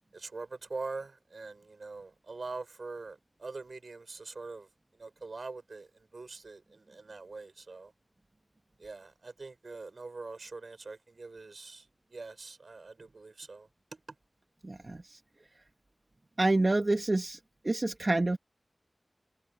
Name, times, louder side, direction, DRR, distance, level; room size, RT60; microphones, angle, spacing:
voice 1, 0.1-7.9 8.8-14.0, right 3 dB, 80° right, 5.7 m, -44 dB
voice 2, 14.6-15.2 16.4-17.4 17.6-18.4, right 2 dB, 50° right, 1.2 m, -28 dB
wide cardioid pair, 50°, 0 cm